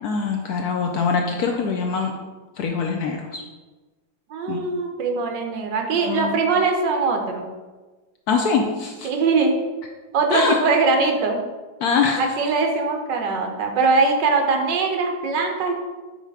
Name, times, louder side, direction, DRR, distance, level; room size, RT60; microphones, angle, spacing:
voice 1, 0.0-2.1 2.6-3.4 4.5-4.6 5.9-6.4 8.3-9.1 10.3-10.6 11.8-12.2, left 5 dB, 70° left, 2 dB, 0.9 m, -23 dB
voice 2, 4.3-7.5 9.0-9.6 10.1-11.4 12.2-15.7, right 4 dB, 75° right, 3 dB, 1.4 m, -21 dB
5.7 x 4.0 x 4.6 m, 1.2 s
omnidirectional pair, 2.0 m